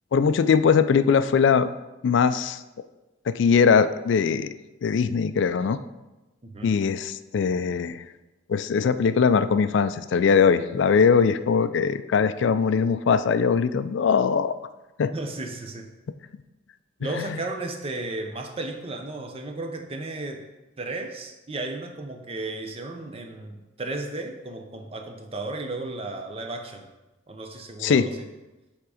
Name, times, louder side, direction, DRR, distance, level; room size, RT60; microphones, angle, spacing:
voice 1, 0.1-1.7 2.0-2.6 3.3-4.5 4.8-5.8 6.6-8.0 8.5-14.5 15.0-15.1 17.2-17.3 27.8-28.0, left 6 dB, 65° left, 12 dB, 0.3 m, -21 dB
voice 2, 6.4-6.7 15.1-15.9 17.0-20.4 20.8-26.9 27.3-28.3, right 2 dB, 30° right, 5 dB, 0.6 m, -34 dB
7.5 x 3.6 x 4.9 m, 1.1 s
head